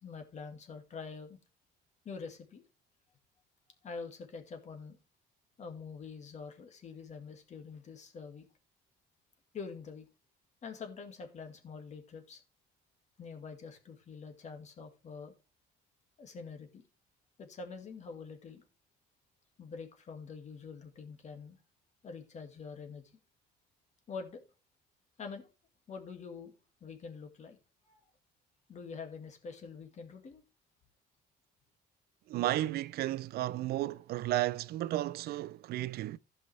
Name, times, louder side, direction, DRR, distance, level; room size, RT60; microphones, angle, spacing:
voice 1, 0.0-1.4 2.0-2.6 3.8-5.0 5.6-8.4 9.5-10.1 10.6-12.4 13.2-15.3 16.2-16.8 17.4-18.6 19.6-21.6 22.0-23.0 24.1-24.4 25.2-25.5 25.9-26.5 26.8-27.6 27.8-28.0 28.7-30.4, left 5 dB, 45° left, 2.1 m, -45 dB
voice 2, 32.3-36.2, right 15 dB, 65° right, 0.5 m, -33 dB
15.0 x 5.5 x 3.3 m
cardioid pair, 110°, 17 cm